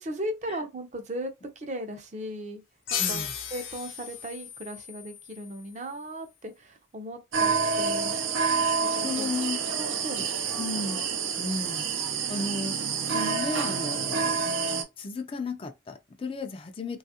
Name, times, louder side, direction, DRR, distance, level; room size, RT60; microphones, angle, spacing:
voice 1, 0.0-1.3 1.6-2.6 2.9-8.2 8.8-9.3 9.7-10.6, equal, 35° right, 0.5 m, -37 dB
sound 1, 2.9-6.1, left 8 dB, 80° left, 0.7 m, -35 dB
voice 2, 3.0-3.3 9.0-9.6 10.2-10.3 10.6-11.1 11.4-11.9 12.3-12.7 13.1-14.5 15.0-17.0, left 3 dB, 30° left, 0.4 m, -34 dB
sound 2, 7.3-14.8, right 5 dB, 85° right, 0.6 m, -28 dB
3.1 x 2.4 x 2.8 m
head